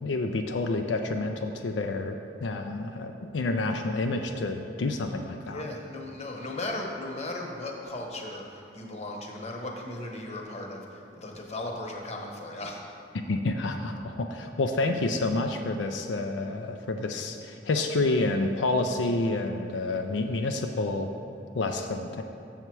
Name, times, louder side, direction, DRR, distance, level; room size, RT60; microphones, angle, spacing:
voice 1, 0.0-5.7 13.3-21.1 21.5-22.2, left 2 dB, 85° left, 5 dB, 0.4 m, -29 dB
voice 2, 5.5-12.8, left 2 dB, 40° left, 1 dB, 0.9 m, -37 dB
7.2 x 6.7 x 4.6 m, 2.8 s
head